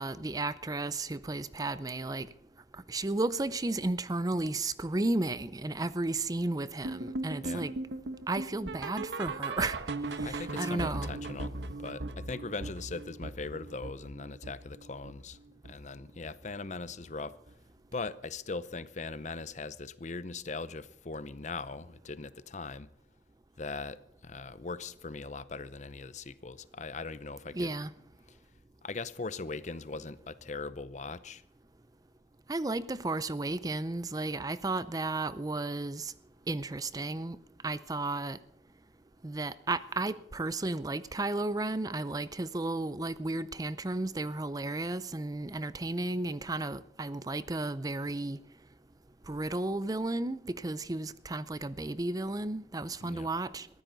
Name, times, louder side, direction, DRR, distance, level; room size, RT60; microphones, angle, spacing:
voice 1, 0.0-2.3 2.9-7.7 8.3-9.8 10.1-11.1 27.5-27.9 32.5-36.1 36.5-37.4 37.6-38.4 39.2-48.4 49.3-53.7, right 2 dB, 20° right, 0.5 m, -33 dB
sound 1, 6.8-16.0 16.2-16.6 16.9-17.0 17.5-17.6 18.1-18.2, right 2 dB, 80° right, 1.1 m, -39 dB
voice 2, 10.2-15.4 15.6-17.4 17.9-22.9 23.6-27.7 28.3-28.4 28.8-31.4 53.0-53.3, left 3 dB, 40° left, 0.7 m, -40 dB
22.0 x 15.0 x 4.0 m
head